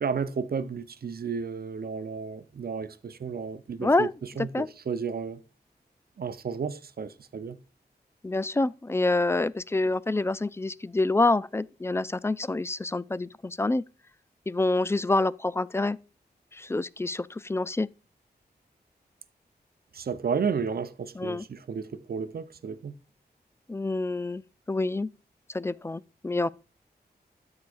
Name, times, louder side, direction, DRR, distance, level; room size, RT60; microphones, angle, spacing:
voice 1, 0.0-4.1 4.4-5.4 6.2-7.6 19.9-22.9, right 6 dB, 65° right, 0.7 m, -32 dB
voice 2, 3.8-4.1 4.5-4.7 8.2-13.8 14.5-16.0 16.6-17.9 21.2-21.4 23.7-24.4 24.7-25.1 25.5-26.5, left 2 dB, 15° left, 0.3 m, -27 dB
13.0 x 4.7 x 2.5 m
wide cardioid pair, 105°, 17 cm